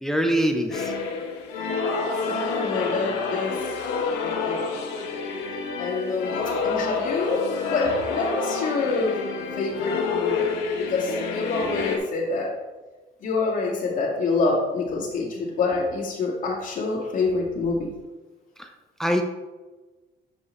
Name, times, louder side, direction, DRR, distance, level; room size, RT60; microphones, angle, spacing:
voice 1, 0.0-0.9 18.6-18.7 19.0-19.2, equal, ahead, 4 dB, 0.6 m, -23 dB
sound 1, 0.7-12.0, left 4 dB, 90° left, 1.0 m, -28 dB
voice 2, 2.2-3.6 4.2-4.8 5.8-6.3 6.6-9.2 9.6-12.6 13.2-17.9, left 3 dB, 50° left, -3 dB, 2.1 m, -26 dB
7.4 x 5.3 x 3.1 m, 1.2 s
cardioid pair, 110°, 17 cm